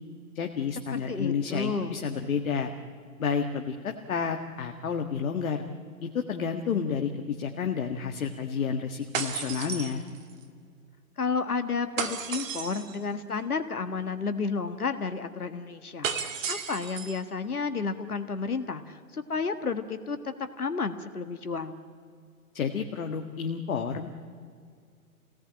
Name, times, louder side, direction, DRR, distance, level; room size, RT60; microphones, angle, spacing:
voice 1, 0.4-2.7 3.2-5.6 6.0-10.0 22.5-24.1, left 6 dB, 65° left, 4 dB, 1.8 m, -30 dB
voice 2, 0.9-2.0 11.2-20.2 20.6-21.8, left 4 dB, 90° left, 9 dB, 1.6 m, -31 dB
sound 1, 9.1-10.4 12.0-13.0 16.0-17.2, right 7 dB, 60° right, 2.6 m, -33 dB
29.0 x 18.0 x 8.8 m, 2.1 s
hypercardioid pair, 125°, 43 cm